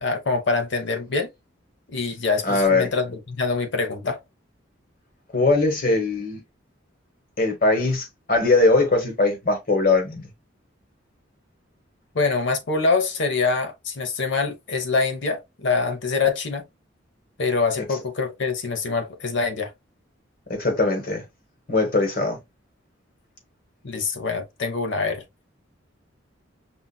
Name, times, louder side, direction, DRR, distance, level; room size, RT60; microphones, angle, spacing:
voice 1, 0.0-1.3 1.9-4.2 12.1-16.6 17.4-19.7 23.8-25.2, left 4 dB, 65° left, 0.7 m, -24 dB
voice 2, 2.4-2.9 5.3-6.4 7.4-10.3 20.5-21.2 21.7-22.4, left 3 dB, 50° left, 1.3 m, -21 dB
5.5 x 2.4 x 2.2 m
head